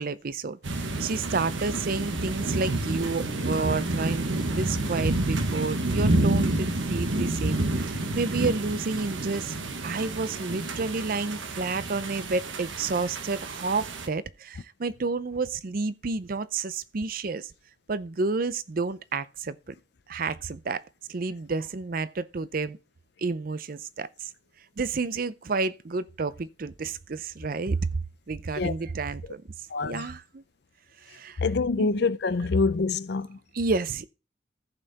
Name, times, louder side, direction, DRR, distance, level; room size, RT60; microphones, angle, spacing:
voice 1, 0.0-17.5 17.9-19.8 20.1-22.8 23.2-24.3 24.8-27.9 28.3-29.4 29.8-30.4 31.0-31.4 31.8-31.9 33.5-34.1, right 4 dB, 45° right, 0.5 m, -30 dB
sound 1, 0.6-14.1, right 2 dB, 80° right, 1.3 m, -29 dB
voice 2, 29.7-30.0 31.4-33.4, left 4 dB, 60° left, 0.5 m, -25 dB
14.5 x 5.7 x 4.0 m
head